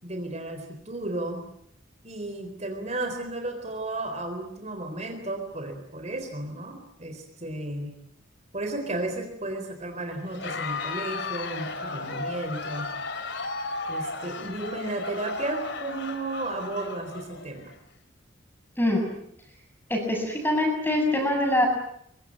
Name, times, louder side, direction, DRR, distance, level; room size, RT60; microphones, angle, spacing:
voice 1, 0.0-1.4 2.0-8.0 8.5-12.9 13.9-17.7, right 2 dB, 35° right, 5 dB, 3.9 m, -33 dB
Crowd, 10.2-17.8, left 3 dB, 60° left, 3.1 m, -35 dB
voice 2, 19.9-21.7, left 1 dB, 10° left, 3 dB, 7.1 m, -24 dB
25.0 x 24.0 x 8.7 m, 0.72 s
head